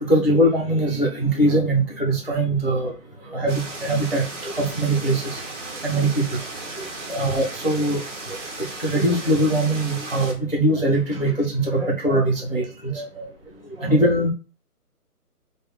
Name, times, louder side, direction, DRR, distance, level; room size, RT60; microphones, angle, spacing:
voice 1, 0.0-2.9 3.3-5.4 5.8-6.2 7.1-8.0 8.3-8.4 8.8-13.3 13.8-14.3, right 1 dB, 40° left, 0 dB, 0.4 m, -21 dB
sound 1, 3.5-10.3, right 2 dB, 50° right, 0.9 m, -35 dB
3.3 x 2.1 x 3.8 m, 0.32 s
hypercardioid pair, 175°, 47 cm